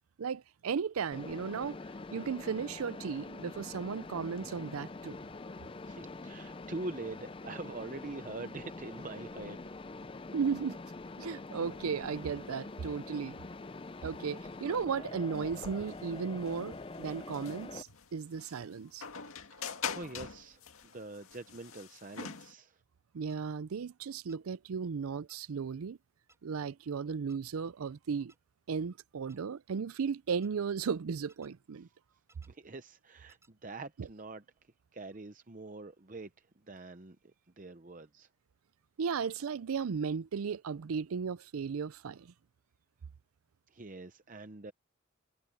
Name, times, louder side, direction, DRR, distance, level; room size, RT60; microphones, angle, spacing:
voice 1, 0.2-1.8 2.1-5.2 10.3-10.8 11.2-13.4 14.0-19.0 23.1-26.0 26.4-28.3 28.7-31.9 34.0-34.1 39.0-42.3, right 6 dB, 90° right, 0.5 m, -35 dB
Mechanisms, 1.1-17.8, left 3 dB, 25° left, 0.5 m, -45 dB
voice 2, 5.8-9.6 19.6-22.8 32.5-34.4 34.9-38.3 43.7-44.7, right 2 dB, 40° right, 0.7 m, -44 dB
sound 1, 11.7-22.5, left 6 dB, 85° left, 2.0 m, -45 dB
sound 2, 23.3-23.4 24.3-24.4 25.3-25.4 26.3-26.4 27.3-27.4 28.3-28.4 29.3-29.4 30.3-30.5 31.3-31.5 32.3-32.5 33.3-33.5, right 2 dB, 15° right, 7.5 m, -64 dB
head